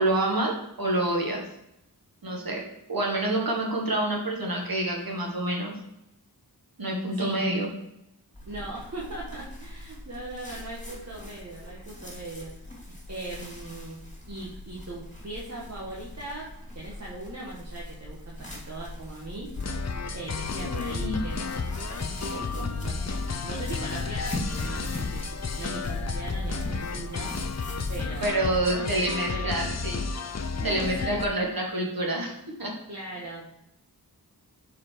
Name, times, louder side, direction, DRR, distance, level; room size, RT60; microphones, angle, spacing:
voice 1, 0.0-1.4 2.2-2.6 2.9-5.7 6.8-7.7 20.6-21.2 22.5-22.7 28.2-30.0 30.6-32.3 32.6-32.7, right 1 dB, 60° right, -1 dB, 1.8 m, -27 dB
voice 2, 7.1-7.4 8.5-12.5 13.1-14.0 14.3-19.5 20.1-21.4 22.1-23.2 23.4-25.2 25.6-27.3 27.9-29.6 30.6-31.2 32.9-33.5, right 2 dB, 40° right, -6 dB, 1.6 m, -39 dB
sound 1, 8.3-28.3, left 1 dB, 20° left, 2.4 m, -41 dB
sound 2, 19.6-31.2, left 4 dB, 45° left, 0.6 m, -32 dB
7.2 x 4.5 x 4.6 m, 0.84 s
wide cardioid pair, 70°, 39 cm